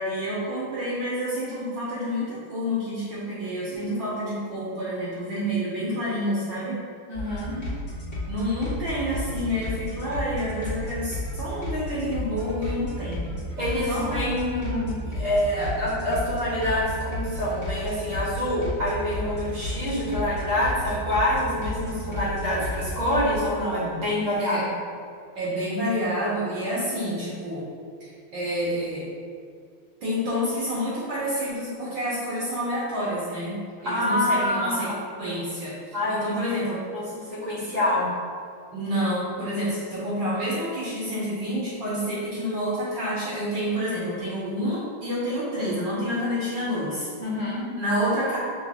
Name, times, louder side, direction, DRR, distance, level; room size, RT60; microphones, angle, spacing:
voice 1, 0.0-6.8 8.2-13.2 13.9-14.3 24.4-24.7 25.3-27.7 28.0-29.1 30.0-33.6 33.8-34.9 35.2-36.8 38.7-47.1 47.8-48.4, equal, 65° right, -8 dB, 1.5 m, -28 dB
sound 1, 7.1-23.4, left 1 dB, 25° left, 1.4 m, -33 dB
voice 2, 7.1-7.6 13.6-24.6 33.8-35.0 35.9-36.4 36.9-38.1 47.2-47.7, left 1 dB, 45° right, -7 dB, 1.2 m, -26 dB
6.1 x 2.9 x 2.8 m, 2.2 s
omnidirectional pair, 2.3 m